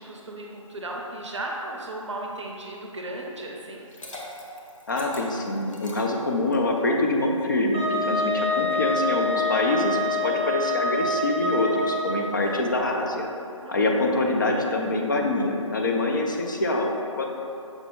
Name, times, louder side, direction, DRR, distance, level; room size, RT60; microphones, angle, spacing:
voice 1, 0.0-3.8 13.6-14.3, right 1 dB, 60° right, -1 dB, 0.5 m, -36 dB
Liquid, 3.7-6.8, left 1 dB, 70° left, 0.8 m, -42 dB
voice 2, 4.9-13.3 13.7-17.3, left 2 dB, 35° left, 1 dB, 0.4 m, -25 dB
Wind instrument woodwind instrument, 7.7-12.4, left 1 dB, 20° right, 0.6 m, -26 dB
6.0 x 2.1 x 3.6 m, 2.7 s
figure-of-eight pair, 150°, 17 cm